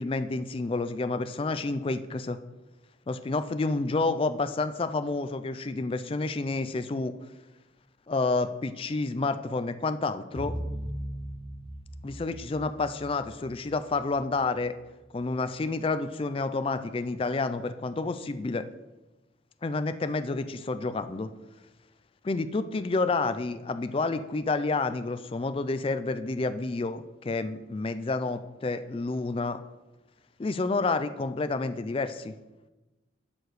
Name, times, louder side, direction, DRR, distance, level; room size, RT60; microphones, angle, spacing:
voice 1, 0.0-2.4 3.1-7.1 8.1-10.5 12.0-14.7 15.1-18.7 19.6-21.3 22.2-29.6 30.4-32.3, left 3 dB, 30° left, 11 dB, 0.3 m, -29 dB
sound 1, 10.4-14.8, equal, 25° right, 1.0 m, -39 dB
12.5 x 4.8 x 3.1 m, 1.1 s
head